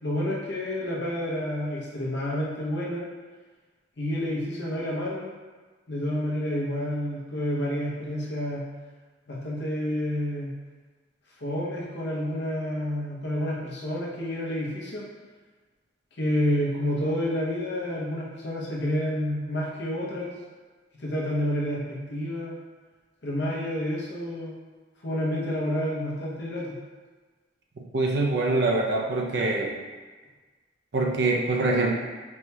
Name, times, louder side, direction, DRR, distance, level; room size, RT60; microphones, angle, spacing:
voice 1, 0.0-3.1 4.0-5.3 5.9-8.6 9.3-10.5 11.4-15.0 16.2-20.3 21.0-22.5 23.2-24.5 25.0-26.8, left 1 dB, 65° left, -4 dB, 0.8 m, -29 dB
voice 2, 27.9-29.7 30.9-31.9, right 2 dB, 60° right, -1 dB, 0.5 m, -24 dB
4.4 x 2.8 x 2.2 m, 1.4 s
head